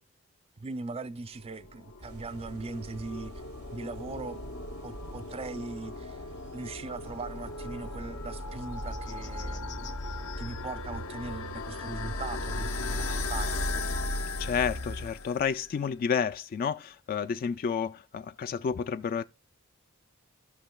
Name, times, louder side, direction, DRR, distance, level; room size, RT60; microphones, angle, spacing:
voice 1, 0.6-3.3 3.7-4.4 4.8-6.2 6.5-13.6, right 3 dB, 25° right, 0.4 m, -40 dB
sound 1, 1.5-15.7, left 2 dB, 75° left, 0.8 m, -37 dB
sound 2, 2.0-15.1, right 1 dB, 80° right, 0.9 m, -44 dB
sound 3, 6.7-7.2 7.5-7.6 7.8-7.9 8.2-13.9, left 10 dB, 60° left, 1.4 m, -53 dB
voice 2, 14.4-19.2, left 6 dB, 40° left, 0.3 m, -30 dB
16.0 x 5.7 x 2.2 m
head